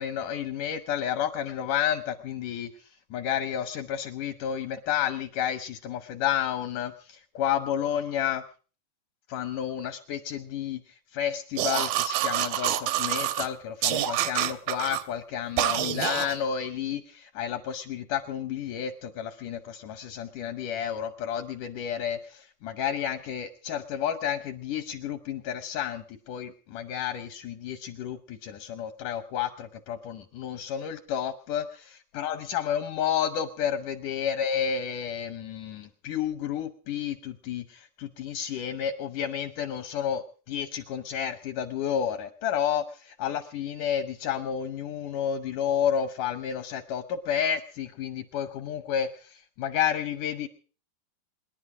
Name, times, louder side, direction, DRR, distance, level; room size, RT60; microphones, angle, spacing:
voice 1, 0.0-2.7 3.1-8.4 9.3-50.5, left 9 dB, 80° left, 11 dB, 1.8 m, -31 dB
sound 1, 11.6-13.5 13.8-15.0 15.6-16.4, right 12 dB, 75° right, 2.4 m, -27 dB
27.0 x 10.5 x 4.9 m, 0.41 s
omnidirectional pair, 4.7 m